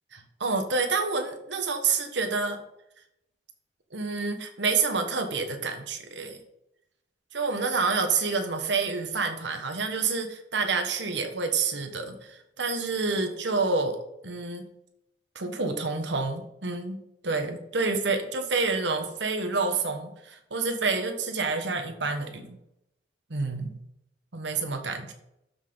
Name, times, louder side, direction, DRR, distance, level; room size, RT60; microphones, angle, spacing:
voice 1, 0.1-2.6 3.9-6.4 7.3-14.0 14.2-14.7 15.3-22.6 23.3-23.8 24.3-25.1, right 4 dB, 80° right, 5 dB, 1.3 m, -28 dB
13.0 x 5.8 x 3.9 m, 0.83 s
head